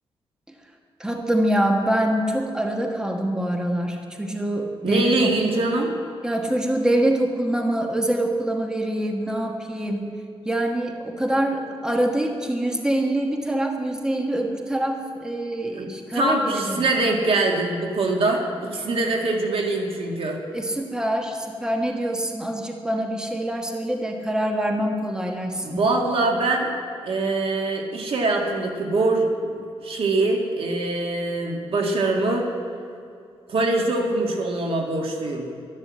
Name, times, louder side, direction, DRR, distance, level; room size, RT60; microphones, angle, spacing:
voice 1, 1.0-5.3 6.2-10.1 10.4-16.8 20.5-25.8, right 1 dB, 5° right, 2 dB, 1.4 m, -25 dB
voice 2, 4.8-5.9 15.7-15.9 16.1-20.4 25.6-26.7 27.0-32.5 33.5-35.5, right 2 dB, 70° right, 2 dB, 2.1 m, -23 dB
12.5 x 11.5 x 7.6 m, 2.4 s
wide cardioid pair, 115°, 10 cm